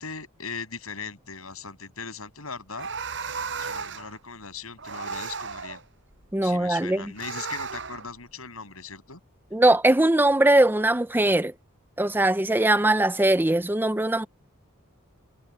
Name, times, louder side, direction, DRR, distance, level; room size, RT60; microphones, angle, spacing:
voice 1, 0.0-2.9 3.6-5.8 6.4-9.2, left 5 dB, 80° left, 7.4 m, -39 dB
sound 1, 2.7-4.2 4.8-5.8 7.2-8.1, right 5 dB, 60° right, 7.0 m, -34 dB
voice 2, 6.3-7.1 9.5-11.5 12.0-14.3, right 1 dB, 10° right, 0.6 m, -21 dB
head